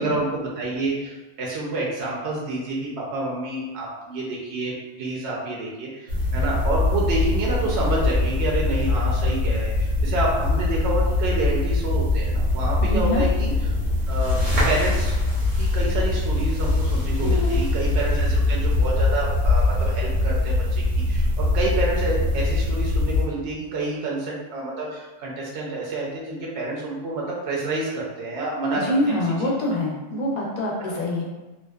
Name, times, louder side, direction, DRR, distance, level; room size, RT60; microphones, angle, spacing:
voice 1, 0.0-4.7 5.0-13.5 14.1-14.4 14.6-15.2 15.6-29.2 30.8-30.9, right 2 dB, 70° right, -4 dB, 0.8 m, -28 dB
sound 1, 6.1-23.2, left 2 dB, 90° right, 1.2 m, -22 dB
voice 2, 12.8-13.2 17.2-17.6 28.7-31.2, left 1 dB, 50° left, -3 dB, 0.5 m, -25 dB
2.6 x 2.1 x 2.2 m, 1.1 s
omnidirectional pair, 1.3 m